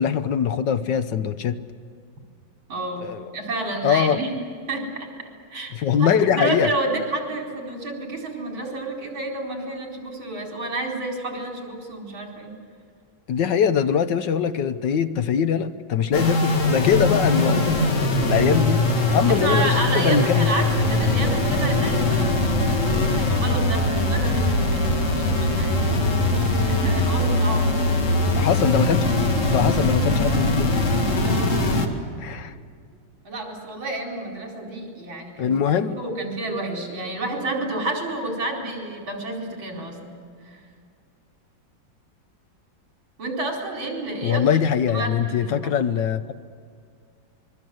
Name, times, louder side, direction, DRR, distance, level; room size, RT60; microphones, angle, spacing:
voice 1, 0.0-1.6 3.0-3.3 3.8-4.2 5.7-6.7 13.3-18.9 19.1-20.5 28.3-29.1 29.5-30.8 32.2-32.5 35.4-36.0 44.2-46.3, left 7 dB, 70° left, 11 dB, 1.5 m, -22 dB
voice 2, 2.7-3.1 3.3-4.3 4.7-4.8 5.5-5.7 6.0-12.5 16.9-17.1 19.3-26.3 26.7-28.2 31.2-31.6 33.3-35.5 36.0-40.1 40.5-40.6 43.2-44.4 44.9-45.7, right 2 dB, 80° right, 0 dB, 5.2 m, -30 dB
sound 1, 16.1-31.9, left 2 dB, 40° left, 2.2 m, -21 dB
26.0 x 22.5 x 7.9 m, 2.2 s
omnidirectional pair, 2.1 m